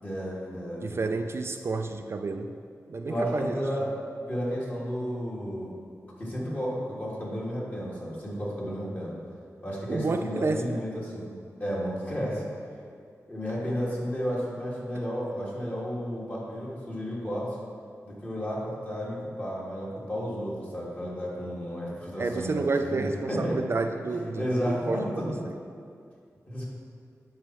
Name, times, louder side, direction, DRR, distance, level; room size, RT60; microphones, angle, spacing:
voice 1, 0.0-1.0 3.1-3.9 4.3-5.7 6.2-9.2 9.6-11.3 11.6-12.4 13.3-17.6 18.0-23.6 24.1-25.3 26.5-26.7, equal, 30° left, -6 dB, 2.3 m, -32 dB
voice 2, 0.8-2.5 2.9-3.5 9.9-10.8 22.2-25.2, right 3 dB, 50° right, 6 dB, 0.4 m, -30 dB
9.5 x 4.4 x 6.1 m, 2.3 s
wide cardioid pair, 110°, 6 cm